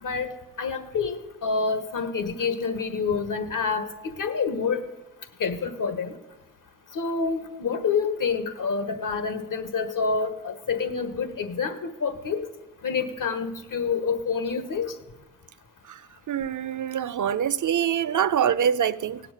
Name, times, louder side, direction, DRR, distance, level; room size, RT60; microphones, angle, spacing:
voice 1, 0.0-0.3 0.6-4.8 5.4-6.1 6.9-12.4 12.8-14.9, left 5 dB, 85° left, 1.7 m, -27 dB
voice 2, 16.3-19.2, right 8 dB, 70° right, 0.7 m, -25 dB
17.5 x 7.7 x 9.3 m
wide cardioid pair, 100°, 31 cm